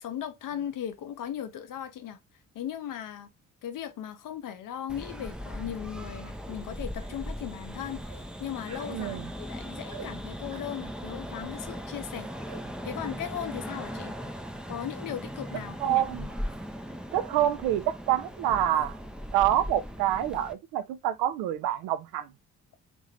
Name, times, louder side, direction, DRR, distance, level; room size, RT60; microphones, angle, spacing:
voice 1, 0.0-2.2 2.5-3.3 3.6-12.3 12.8-14.1 14.7-16.0, left 10 dB, 50° left, 0.8 m, -37 dB
sound 1, 4.9-20.5, equal, ahead, 0.5 m, -39 dB
sound 2, 6.5-6.6 7.0-7.2 8.0-8.3 8.6-9.0 9.9-10.1 10.5-10.8 12.4-12.7, right 6 dB, 40° right, 1.3 m, -46 dB
voice 2, 8.9-9.3 15.8-16.3 17.1-19.0 19.3-22.3, right 12 dB, 60° right, 0.6 m, -27 dB
3.6 x 2.6 x 3.2 m
figure-of-eight pair, 40°, 42 cm